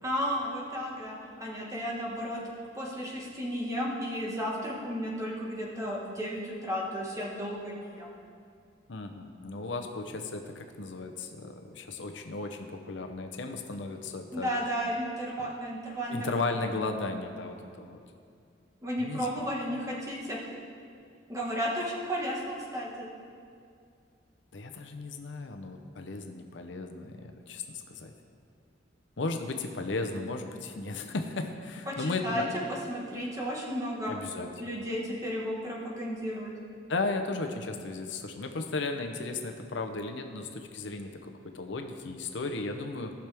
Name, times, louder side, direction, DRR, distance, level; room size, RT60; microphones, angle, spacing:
voice 1, 0.0-2.4 2.7-8.1 14.3-16.4 16.7-16.9 18.8-20.5 21.3-23.1 31.9-32.4 32.7-34.1 34.6-36.5, equal, 15° right, -4 dB, 1.6 m, -33 dB
voice 2, 8.9-14.5 16.1-18.0 19.0-19.5 24.5-28.1 29.2-32.5 34.1-34.5 36.9-43.1, left 3 dB, 75° left, 5 dB, 0.7 m, -35 dB
17.5 x 6.0 x 3.5 m, 2.3 s
head